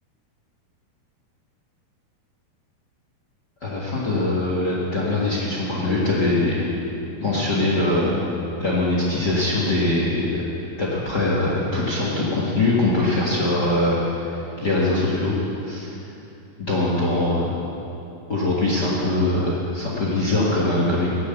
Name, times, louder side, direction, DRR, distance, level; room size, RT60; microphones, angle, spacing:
voice 1, 3.6-6.6 7.2-8.2 8.6-10.4 10.8-15.3 15.7-15.9 16.6-17.5 18.3-21.1, left 2 dB, 45° left, -5 dB, 1.3 m, -22 dB
17.0 x 8.1 x 6.9 m, 2.8 s
omnidirectional pair, 4.6 m